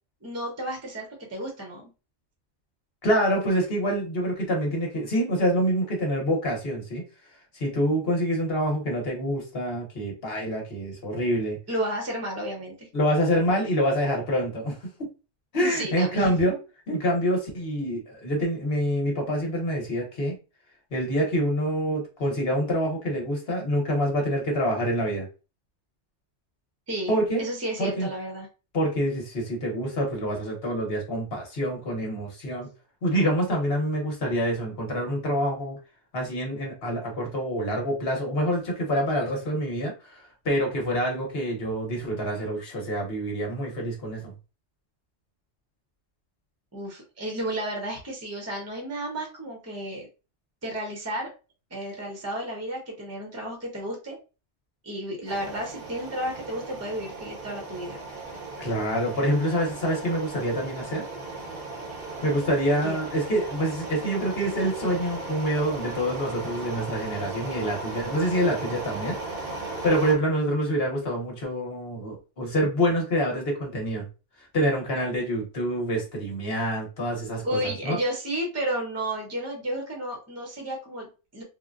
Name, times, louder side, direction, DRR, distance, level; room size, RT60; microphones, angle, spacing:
voice 1, 0.2-1.9 11.7-12.9 15.6-16.3 26.9-28.5 46.7-50.1 50.6-51.3 51.7-54.2 54.8-58.0 62.8-63.0 77.4-81.4, right 1 dB, 15° right, 0 dB, 0.8 m, -32 dB
voice 2, 3.0-7.0 7.5-11.6 12.9-14.8 15.5-16.6 16.9-20.3 20.9-25.3 27.1-27.4 27.8-28.1 28.7-32.7 33.0-35.8 36.1-44.3 58.6-61.0 62.2-69.2 69.6-74.1 74.5-78.0, equal, 55° left, 0 dB, 1.3 m, -26 dB
sound 1, 55.3-70.1, right 2 dB, 55° right, 0.9 m, -37 dB
3.8 x 2.2 x 2.5 m, 0.31 s
omnidirectional pair, 1.2 m